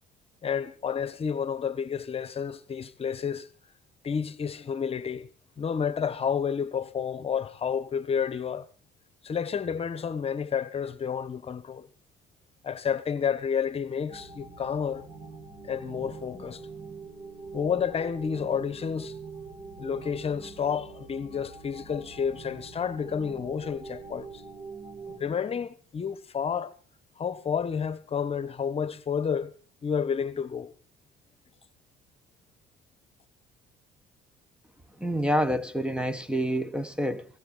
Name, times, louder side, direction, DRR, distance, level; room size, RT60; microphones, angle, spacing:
voice 1, 0.4-3.5 4.0-5.3 5.6-8.7 9.2-11.9 12.6-15.1 15.6-16.7 17.5-19.2 19.8-24.4 25.1-26.7 27.2-29.5 29.8-30.7, left 7 dB, 35° left, 1.2 m, -30 dB
sound 1, 14.1-25.2, right 4 dB, 45° right, 2.8 m, -44 dB
voice 2, 35.0-37.3, equal, 5° right, 1.2 m, -27 dB
18.5 x 16.5 x 4.0 m
cardioid pair, 110°, 17 cm